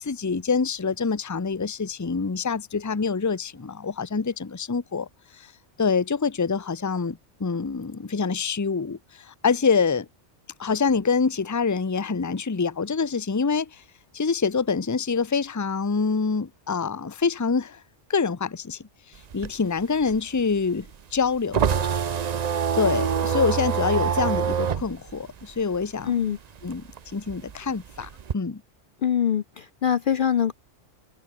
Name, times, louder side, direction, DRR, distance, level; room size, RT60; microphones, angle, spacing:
voice 1, 0.0-5.1 5.3-5.5 5.8-10.1 10.6-13.8 14.1-17.8 18.1-18.8 19.3-20.9 21.1-21.8 22.7-26.1 26.6-26.8 27.1-28.6, left 5 dB, 20° left, 0.7 m, -26 dB
sound 1, 19.2-26.3 26.6-28.3, right 7 dB, 45° right, 0.6 m, -26 dB
voice 2, 26.1-26.4 29.0-30.5, left 9 dB, 55° left, 0.7 m, -23 dB
omnidirectional pair, 1.2 m